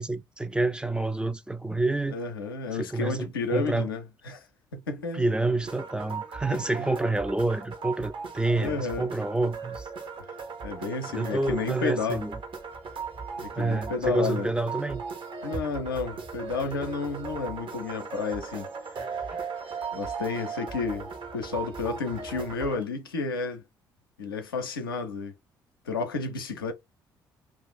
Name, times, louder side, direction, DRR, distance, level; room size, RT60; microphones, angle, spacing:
voice 1, 0.0-2.2 2.7-3.9 5.1-9.9 11.1-12.4 13.6-15.0 19.3-19.4, right 2 dB, 10° right, 0.4 m, -28 dB
voice 2, 2.1-4.5 4.7-5.2 6.5-6.9 8.6-9.1 10.6-12.2 13.4-14.5 15.4-18.7 19.9-21.1 21.3-23.6 24.2-25.3 25.9-26.7, left 4 dB, 85° left, 0.5 m, -31 dB
sound 1, 5.6-22.8, right 5 dB, 50° right, 0.9 m, -38 dB
2.4 x 2.4 x 3.6 m
figure-of-eight pair, 45°, 11 cm